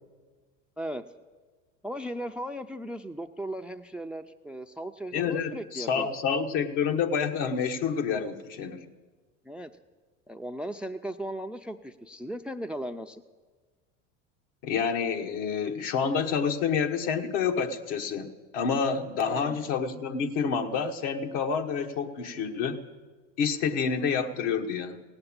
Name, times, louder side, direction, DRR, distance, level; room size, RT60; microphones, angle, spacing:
voice 1, 1.8-6.1 9.4-9.7 10.3-13.2 19.3-19.7, right 1 dB, 5° right, 9 dB, 0.4 m, -37 dB
voice 2, 5.1-8.9 14.6-22.8 23.4-25.0, left 6 dB, 65° left, 5 dB, 1.4 m, -28 dB
17.5 x 8.0 x 8.8 m, 1.4 s
hypercardioid pair, 90°, 37 cm